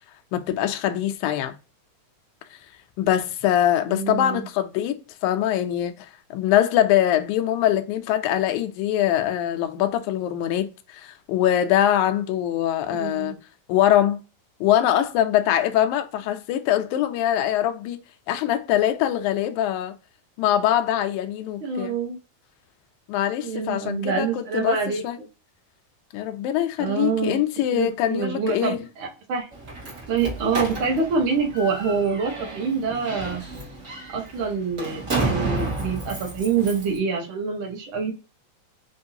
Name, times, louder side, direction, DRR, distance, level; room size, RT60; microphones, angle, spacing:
voice 1, 0.3-1.6 3.0-13.4 13.7-14.2 14.6-18.0 18.3-19.9 20.4-21.9 23.1-24.8 25.0-25.2 26.1-28.8, left 11 dB, 80° left, 1.8 m, -23 dB
voice 2, 3.9-4.5 12.9-13.3 21.6-22.2 23.4-25.3 26.8-27.4 27.7-29.5 30.1-33.4 34.1-38.1, right 5 dB, 70° right, 1.2 m, -26 dB
Slam, 29.5-37.0, right 3 dB, 55° right, 0.8 m, -31 dB
5.3 x 2.5 x 2.7 m
omnidirectional pair, 4.0 m